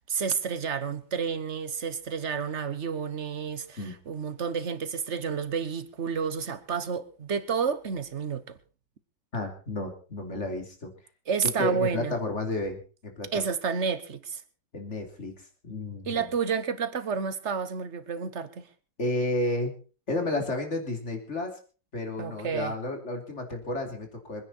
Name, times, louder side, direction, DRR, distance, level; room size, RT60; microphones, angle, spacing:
voice 1, 0.1-3.8 4.1-8.6 11.3-12.1 13.3-14.4 16.0-18.7 22.2-22.7, right 6 dB, 45° right, 1.3 m, -30 dB
voice 2, 9.3-10.9 11.4-13.4 14.7-16.3 19.0-19.7 20.1-21.6 21.9-24.4, left 2 dB, 40° left, 3.6 m, -32 dB
26.0 x 10.0 x 4.2 m
omnidirectional pair, 1.9 m